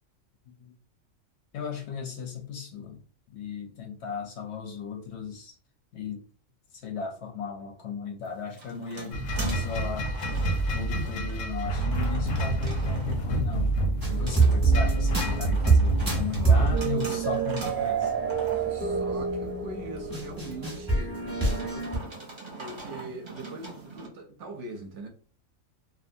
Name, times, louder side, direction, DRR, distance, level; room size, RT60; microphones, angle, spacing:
voice 1, 1.5-3.0 3.3-5.6 5.9-6.2 6.7-10.1 10.7-13.7 14.1-18.1, left 6 dB, 65° left, 0.8 m, -36 dB
Shopping cart - carriage slow speed, 8.2-24.1, right 3 dB, 40° right, 0.4 m, -43 dB
sound 1, 9.1-16.8, right 2 dB, 90° left, 1.1 m, -28 dB
voice 2, 13.9-14.3 16.4-16.7 18.6-21.9 22.6-25.1, right 2 dB, 70° right, 0.8 m, -42 dB
sound 2, 14.0-22.0, right 4 dB, 20° right, 0.8 m, -26 dB
2.6 x 2.2 x 2.6 m
omnidirectional pair, 1.4 m